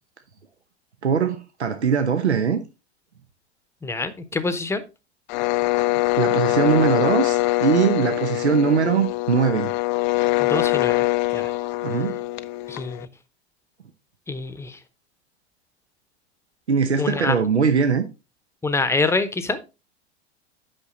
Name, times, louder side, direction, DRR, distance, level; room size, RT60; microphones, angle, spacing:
voice 1, 1.0-2.6 6.2-9.7 11.8-12.2 16.7-18.0, right 6 dB, 85° right, 0.9 m, -21 dB
voice 2, 3.8-4.8 10.4-11.5 12.7-13.1 14.3-14.8 17.0-17.3 18.6-19.6, left 3 dB, 10° left, 0.9 m, -26 dB
sound 1, 5.3-13.1, left 18 dB, 45° left, 0.6 m, -23 dB
9.1 x 6.0 x 3.9 m
figure-of-eight pair, 90°, 33 cm